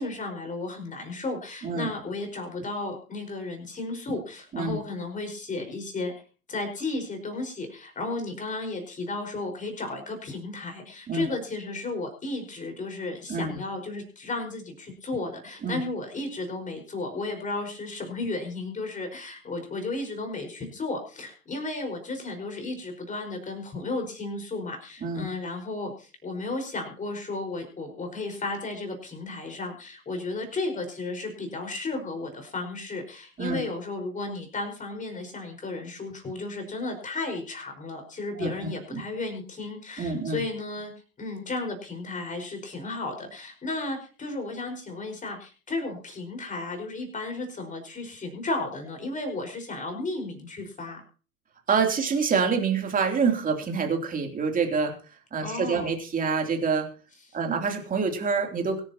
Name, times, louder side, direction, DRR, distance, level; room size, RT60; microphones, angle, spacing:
voice 1, 0.0-6.1 6.5-40.9 41.2-51.0 55.4-55.9, left 2 dB, 15° left, 5 dB, 5.2 m, -34 dB
voice 2, 38.3-39.0 40.0-40.4 51.7-54.9 55.3-56.9 57.3-58.8, right 5 dB, 20° right, 3 dB, 3.2 m, -26 dB
24.0 x 10.5 x 3.0 m, 0.37 s
figure-of-eight pair, 100°, 44 cm